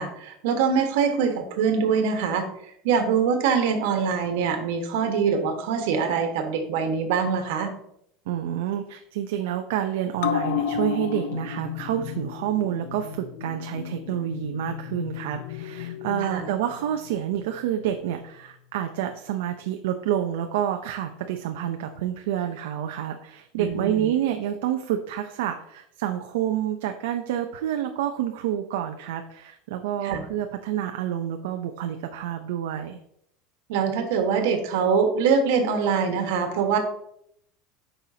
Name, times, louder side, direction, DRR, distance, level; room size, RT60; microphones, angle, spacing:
voice 1, 0.0-2.4 2.8-7.7 16.2-16.4 23.5-24.1 30.0-30.2 33.7-36.8, right 6 dB, 70° right, 5 dB, 1.4 m, -24 dB
voice 2, 8.3-33.0, right 10 dB, 85° right, 5 dB, 0.6 m, -28 dB
sound 1, 10.2-17.1 17.4-17.5, left 9 dB, 90° left, 0.6 m, -32 dB
9.0 x 5.5 x 2.8 m, 0.73 s
cardioid pair, 180°, 0 cm